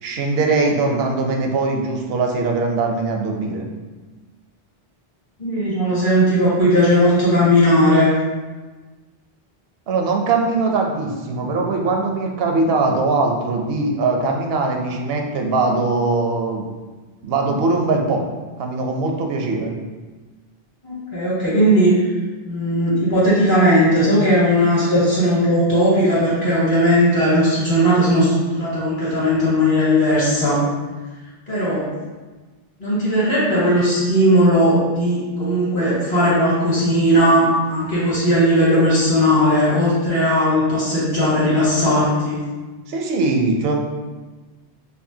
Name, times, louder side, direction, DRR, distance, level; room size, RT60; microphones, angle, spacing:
voice 1, 0.0-3.7 9.9-16.7 17.2-18.2 18.6-19.7 42.9-43.8, right 3 dB, 75° right, 2 dB, 0.8 m, -21 dB
voice 2, 5.4-8.1 20.8-21.9 22.4-30.6 31.5-31.9 32.8-42.4, equal, 55° left, -9 dB, 1.9 m, -17 dB
5.2 x 2.2 x 2.7 m, 1.3 s
omnidirectional pair, 1.0 m